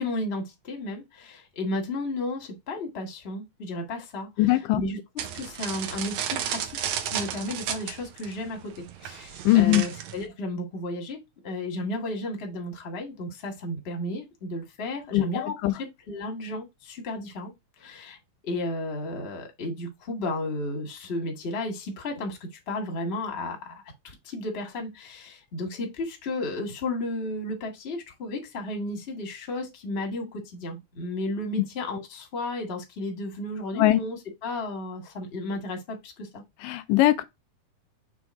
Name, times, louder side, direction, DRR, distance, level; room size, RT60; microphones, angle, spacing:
voice 1, 0.0-18.2 18.4-36.4, left 1 dB, 25° left, 1.4 m, -33 dB
voice 2, 4.4-4.8 9.5-9.8 15.1-15.8 33.8-34.0 36.6-37.2, left 15 dB, 85° left, 2.2 m, -21 dB
sound 1, 5.2-10.3, right 9 dB, 70° right, 2.0 m, -33 dB
6.2 x 3.5 x 4.7 m
omnidirectional pair, 3.8 m